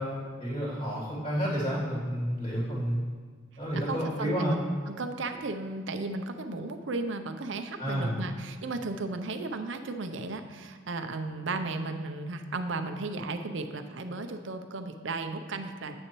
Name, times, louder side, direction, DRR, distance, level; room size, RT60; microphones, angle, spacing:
voice 1, 0.0-3.0 3.6-4.6 7.8-8.2, equal, 30° left, -8 dB, 2.7 m, -30 dB
voice 2, 3.7-4.5 4.9-16.0, right 3 dB, 65° right, 7 dB, 0.6 m, -35 dB
9.5 x 8.7 x 3.0 m, 1.5 s
head